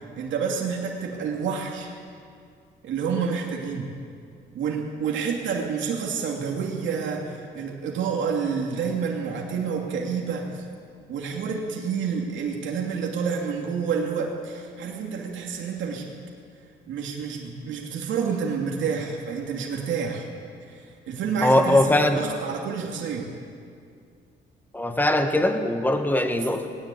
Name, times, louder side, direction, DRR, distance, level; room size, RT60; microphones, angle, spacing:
voice 1, 0.2-1.9 2.8-3.9 4.5-10.6 11.1-16.1 16.9-20.3 20.7-20.8 21.1-21.8 22.2-23.3, right 6 dB, 75° right, -1 dB, 2.7 m, -29 dB
voice 2, 21.4-22.2 24.7-26.7, left 1 dB, 10° left, 6 dB, 1.7 m, -21 dB
19.5 x 17.5 x 8.6 m, 2.3 s
cardioid pair, 110°, 20 cm